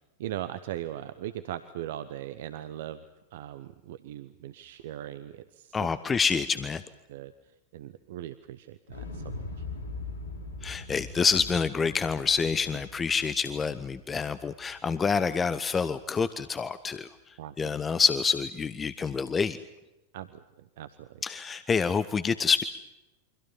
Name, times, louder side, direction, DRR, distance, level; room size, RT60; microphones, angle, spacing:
voice 1, 0.2-3.0 3.3-5.8 7.1-7.3 7.7-9.6 17.4-17.6 20.1-21.2, right 12 dB, 55° right, 12 dB, 1.0 m, -39 dB
voice 2, 5.7-6.8 10.6-17.1 17.6-19.6 21.2-22.6, left 5 dB, 20° left, 14 dB, 0.9 m, -27 dB
Explosion, 8.9-14.9 15.2-15.3, left 3 dB, 70° left, 3.5 m, -41 dB
29.0 x 25.0 x 5.6 m, 1.0 s
figure-of-eight pair, 90°, 0 cm